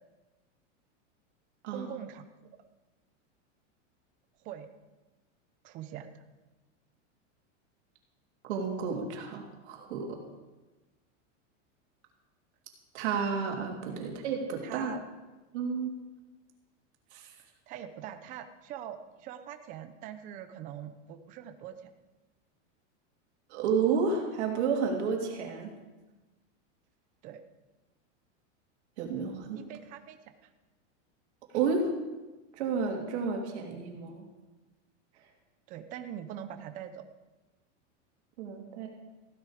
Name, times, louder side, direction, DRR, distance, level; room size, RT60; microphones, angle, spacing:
voice 1, 1.7-2.2 4.4-4.7 5.6-6.2 13.9-14.2 14.6-15.0 17.7-21.9 27.2-27.4 29.6-30.5 35.7-37.0, right 10 dB, 20° right, 8 dB, 0.6 m, -43 dB
voice 2, 8.4-10.2 12.9-15.0 15.5-16.0 17.1-17.3 23.5-25.7 29.0-29.6 31.5-32.0 32.5-34.3 38.4-38.9, right 5 dB, 60° right, 1 dB, 3.0 m, -31 dB
15.5 x 11.0 x 5.0 m, 1.2 s
supercardioid pair, 175°, 37 cm